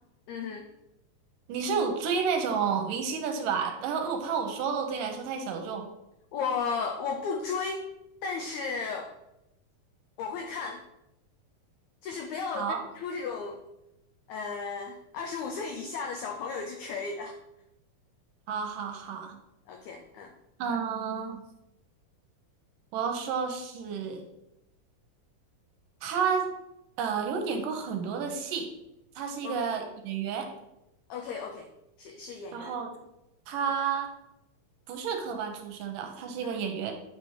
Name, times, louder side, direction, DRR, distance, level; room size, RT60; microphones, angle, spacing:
voice 1, 0.3-0.7 6.3-7.8 8.2-9.1 10.2-10.8 12.0-13.6 14.3-17.4 19.7-20.3 29.4-29.7 31.1-31.7 32.0-32.8 36.4-36.6, left 5 dB, 85° left, 4 dB, 1.6 m, -34 dB
voice 2, 1.5-5.9 12.5-12.8 18.5-19.4 20.6-21.4 22.9-24.2 26.0-26.5 27.0-28.7 29.2-30.5 32.5-32.9 33.5-34.1 34.9-36.9, right 6 dB, 75° right, 4 dB, 2.3 m, -31 dB
8.5 x 3.4 x 4.6 m, 0.88 s
omnidirectional pair, 4.1 m